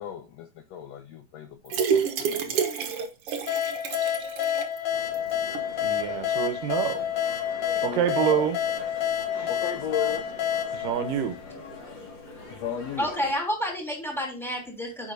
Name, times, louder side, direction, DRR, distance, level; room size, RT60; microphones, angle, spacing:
voice 1, 0.0-2.6 7.7-8.5 9.5-10.3 11.1-11.2 12.5-13.1, left 9 dB, 80° left, 1.5 m, -35 dB
sound 1, 1.7-4.8 5.1-5.2 5.5-5.6, right 6 dB, 60° right, 1.7 m, -28 dB
sound 2, 3.5-11.9, left 10 dB, 65° left, 2.2 m, -29 dB
sound 3, 4.9-13.3, left 2 dB, 40° left, 2.4 m, -44 dB
voice 2, 5.8-7.0 7.8-8.6 9.3-9.5 10.7-11.4, right 9 dB, 90° right, 2.5 m, -27 dB
voice 3, 13.0-15.1, equal, ahead, 2.5 m, -29 dB
9.4 x 6.5 x 2.6 m
omnidirectional pair, 3.8 m